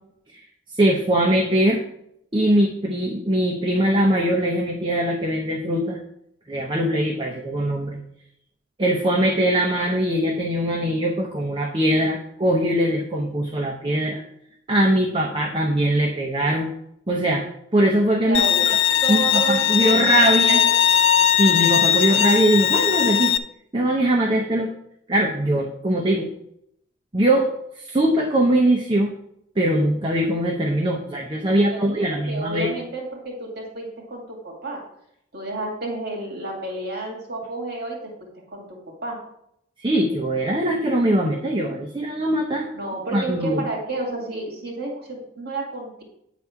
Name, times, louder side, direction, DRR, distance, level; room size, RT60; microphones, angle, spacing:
voice 1, 0.8-1.8 2.3-6.0 6.5-8.0 8.8-14.2 14.7-16.7 17.1-17.5 17.7-18.8 19.1-20.6 21.4-23.3 23.7-24.7 25.1-26.3 27.1-29.1 29.6-32.7 39.8-42.7 43.1-43.6, right 1 dB, 25° right, 0 dB, 0.8 m, -21 dB
voice 2, 18.2-18.7 19.0-20.8 31.5-34.8 35.3-39.2 42.7-46.0, right 2 dB, 55° right, -1 dB, 2.3 m, -31 dB
Bowed string instrument, 18.3-23.4, left 9 dB, 70° left, 0.4 m, -19 dB
9.4 x 4.1 x 5.8 m, 0.74 s
head